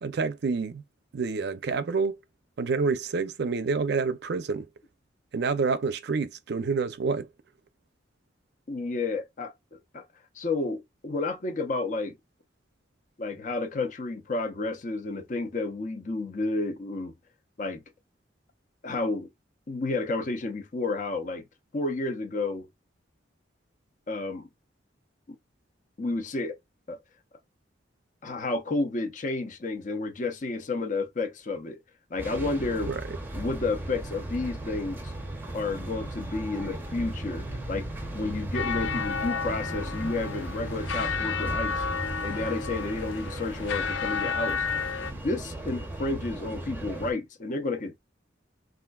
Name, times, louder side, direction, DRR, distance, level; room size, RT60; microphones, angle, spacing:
voice 1, 0.0-0.8 1.1-2.2 2.6-4.7 5.3-7.3 32.9-33.2, right 4 dB, 60° right, 0.4 m, -28 dB
voice 2, 8.7-10.0 10.4-12.1 13.2-17.1 17.6-17.8 18.8-19.3 19.7-21.5 21.7-22.7 24.1-24.5 26.0-26.6 26.9-27.0 28.2-31.8 32.1-32.9 33.3-35.1 35.5-41.8 42.2-44.7 45.1-48.0, left 3 dB, 45° left, 0.6 m, -31 dB
sound 1, 32.2-47.1, right 1 dB, 10° right, 0.6 m, -36 dB
sound 2, 38.5-45.1, left 6 dB, 85° left, 0.4 m, -32 dB
3.6 x 2.5 x 2.2 m
head